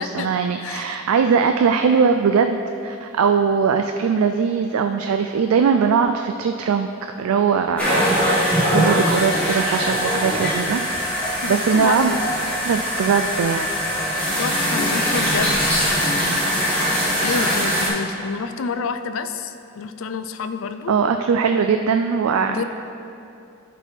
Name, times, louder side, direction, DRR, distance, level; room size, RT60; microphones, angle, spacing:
voice 1, 0.0-10.8 11.5-12.1 12.6-13.7 16.2-16.4 20.9-22.6, right 6 dB, 90° right, 6 dB, 0.3 m, -20 dB
voice 2, 0.6-1.0 11.4-12.3 14.4-15.6 17.2-20.9 22.4-22.6, left 5 dB, 75° left, 10 dB, 0.4 m, -28 dB
sound 1, 7.8-17.9, equal, 5° left, 1.8 m, -21 dB
11.5 x 4.1 x 4.5 m, 2.7 s
head